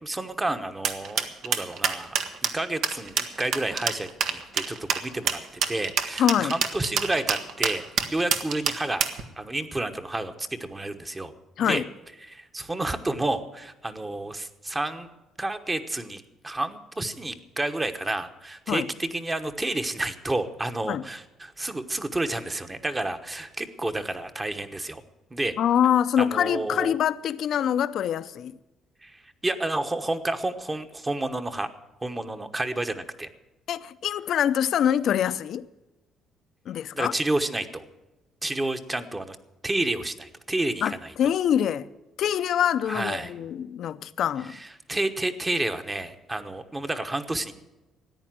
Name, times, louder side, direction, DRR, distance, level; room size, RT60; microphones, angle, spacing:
voice 1, 0.0-2.2 2.4-7.8 8.1-9.0 9.4-11.3 11.6-11.8 12.2-15.1 15.4-25.0 25.3-25.6 26.2-26.9 29.0-31.7 32.0-33.3 36.9-37.8 38.4-39.4 39.6-41.1 42.9-43.3 44.5-47.5, right 2 dB, 15° right, 1.1 m, -30 dB
sound 1, 0.8-9.2, right 7 dB, 70° right, 1.3 m, -26 dB
voice 2, 6.2-6.5 11.6-11.8 18.7-18.9 20.9-21.0 25.6-28.5 33.7-35.6 36.7-37.1 40.8-41.9 42.2-44.6, left 9 dB, 60° left, 0.6 m, -24 dB
14.0 x 9.7 x 7.6 m
cardioid pair, 110°, 0 cm